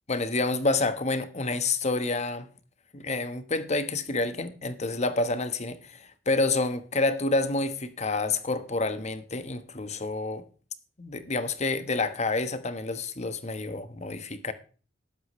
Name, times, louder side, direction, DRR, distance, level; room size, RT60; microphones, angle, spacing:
voice 1, 0.1-2.5 2.9-10.4 11.0-14.5, left 3 dB, 40° left, 1.2 m, -28 dB
13.0 x 11.5 x 3.1 m
head